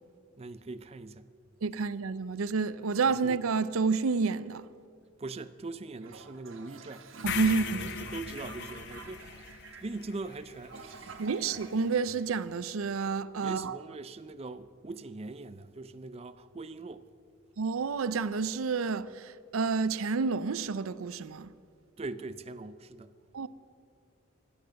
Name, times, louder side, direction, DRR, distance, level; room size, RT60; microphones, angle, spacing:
voice 1, 0.4-1.3 5.2-7.0 7.7-11.2 13.4-17.1 22.0-23.1, right 3 dB, 30° right, 0.4 m, -41 dB
voice 2, 1.6-4.7 7.2-7.9 11.2-13.8 17.6-21.5 23.3-23.5, right 4 dB, 85° right, 0.5 m, -29 dB
Toilet flush, 6.0-12.9, right 4 dB, 70° right, 1.2 m, -49 dB
sound 1, 7.3-11.4, left 6 dB, 55° left, 0.9 m, -39 dB
25.0 x 9.0 x 6.4 m
head